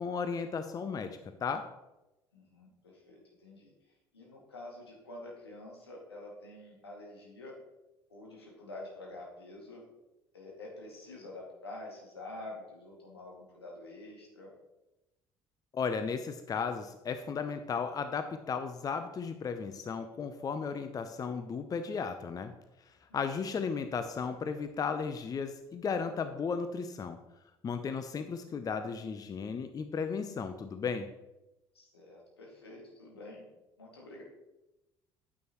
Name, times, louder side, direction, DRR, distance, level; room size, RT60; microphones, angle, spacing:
voice 1, 0.0-1.7 15.7-22.5 23.1-27.2 27.6-31.1, left 5 dB, 30° left, 9 dB, 0.6 m, -35 dB
voice 2, 2.3-3.7 4.1-7.5 8.1-9.8 10.3-14.5 31.7-33.4 33.8-34.2, left 2 dB, 80° left, -2 dB, 2.2 m, -47 dB
9.3 x 8.4 x 3.0 m, 0.97 s
figure-of-eight pair, 55°, 13 cm